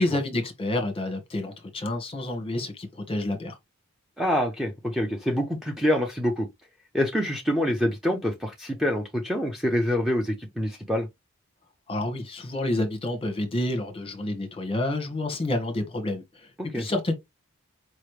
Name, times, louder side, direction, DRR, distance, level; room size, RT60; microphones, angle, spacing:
voice 1, 0.0-3.5 11.9-16.5 16.7-17.1, left 1 dB, 25° left, 1.2 m, -29 dB
voice 2, 4.2-6.5 6.9-11.1 16.6-16.9, equal, ahead, 0.7 m, -26 dB
4.8 x 3.2 x 3.1 m
head